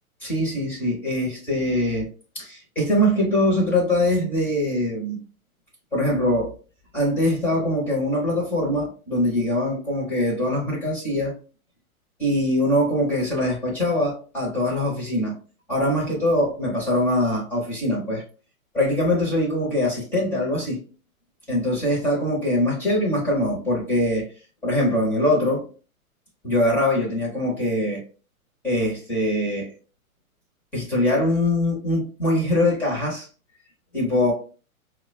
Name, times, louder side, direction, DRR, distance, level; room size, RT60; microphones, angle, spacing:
voice 1, 0.2-2.1 2.3-5.2 5.9-6.5 6.9-11.3 12.2-15.4 15.7-18.2 18.7-20.8 21.5-24.3 24.6-25.7 26.4-28.0 28.6-29.7 30.7-33.3 33.9-34.3, left 1 dB, 5° left, 0.5 m, -23 dB
4.4 x 2.1 x 2.4 m
hypercardioid pair, 140°, 44 cm